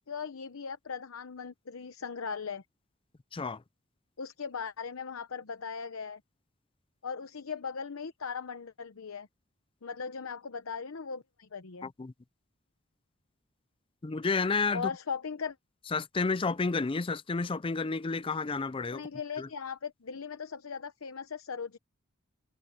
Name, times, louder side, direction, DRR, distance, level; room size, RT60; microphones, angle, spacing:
voice 1, 0.1-2.6 4.2-6.2 7.0-9.3 9.8-11.9 14.7-15.6 18.9-21.8, left 6 dB, 85° left, 0.8 m, -38 dB
voice 2, 14.0-14.8 15.9-19.0, left 4 dB, 25° left, 0.5 m, -30 dB
head